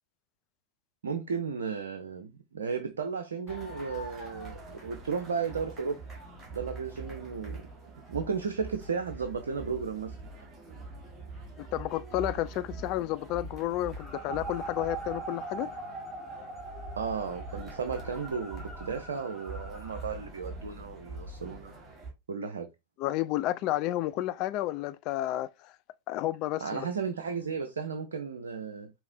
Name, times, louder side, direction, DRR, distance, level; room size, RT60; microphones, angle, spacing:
voice 1, 1.0-6.0 6.5-7.7 8.1-10.2 17.0-21.7 22.3-22.7 26.6-28.9, right 5 dB, 65° right, 0.6 m, -34 dB
sound 1, 3.5-22.1, right 2 dB, 15° right, 1.6 m, -44 dB
voice 2, 11.6-15.7 23.0-25.5 26.1-26.9, left 15 dB, 40° left, 0.3 m, -31 dB
sound 2, 14.0-20.1, right 3 dB, 5° left, 1.5 m, -42 dB
4.8 x 3.1 x 2.7 m
figure-of-eight pair, 90°, 0 cm